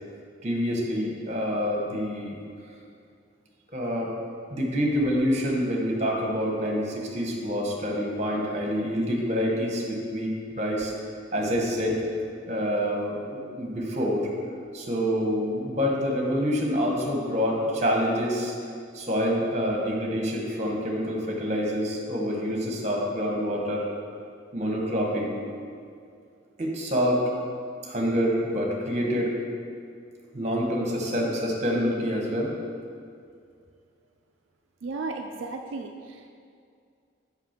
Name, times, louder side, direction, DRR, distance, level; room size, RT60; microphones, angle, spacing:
voice 1, 0.4-2.4 3.7-4.1 4.5-10.9 11.3-12.0 12.5-14.3 14.7-18.6 18.9-23.9 24.5-25.4 26.6-27.2 27.8-29.3 30.3-32.5, equal, 35° right, -1 dB, 1.2 m, -27 dB
voice 2, 34.8-36.3, right 3 dB, 85° right, 3 dB, 0.4 m, -35 dB
5.8 x 5.3 x 5.9 m, 2.3 s
head